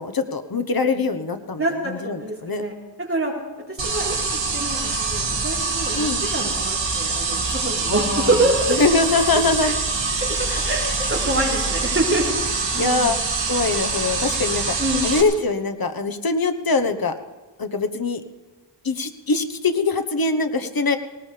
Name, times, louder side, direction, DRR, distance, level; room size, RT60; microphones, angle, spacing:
voice 1, 0.0-2.6 6.0-6.2 7.9-8.4 8.8-9.7 10.5-11.0 12.8-13.2 13.5-14.8 15.0-17.1 17.6-18.2 18.8-21.0, left 3 dB, 55° left, 7 dB, 1.2 m, -23 dB
voice 2, 1.6-3.3 3.7-8.8 9.6-9.7 10.3-13.1 14.8-15.1, right 2 dB, 30° right, -3 dB, 4.1 m, -26 dB
sound 1, 3.8-15.2, right 4 dB, 80° right, 2.0 m, -25 dB
19.0 x 19.0 x 3.4 m, 1.3 s
wide cardioid pair, 65°, 44 cm